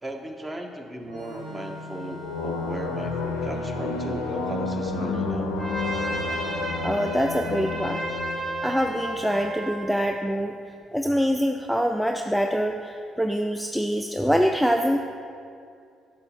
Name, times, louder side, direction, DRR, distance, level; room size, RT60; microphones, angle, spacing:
voice 1, 0.0-5.6, right 1 dB, 20° right, 3 dB, 0.9 m, -36 dB
Organ, 1.0-8.6, left 2 dB, 85° right, 1.6 m, -45 dB
sound 1, 2.2-9.6, left 3 dB, 90° left, 0.5 m, -31 dB
Trumpet, 5.6-9.9, right 1 dB, 55° right, 1.4 m, -33 dB
voice 2, 6.8-8.0 8.6-10.6 10.9-15.0, equal, ahead, 4 dB, 0.4 m, -24 dB
7.7 x 6.2 x 2.9 m, 2.3 s
hypercardioid pair, 50°, 0 cm